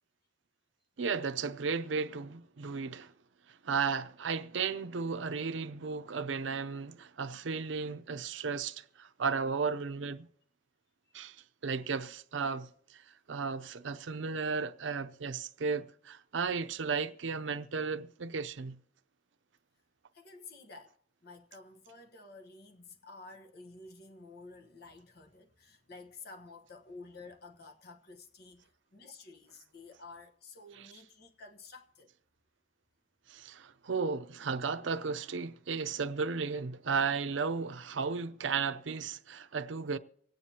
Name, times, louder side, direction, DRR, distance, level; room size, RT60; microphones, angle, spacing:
voice 1, 1.0-3.1 3.5-10.3 11.1-11.4 11.6-13.0 13.3-18.8 33.3-40.0, right 5 dB, 85° right, 0.6 m, -34 dB
voice 2, 20.1-21.0 21.2-32.1, left 3 dB, 55° left, 1.2 m, -51 dB
25.0 x 9.2 x 2.9 m
head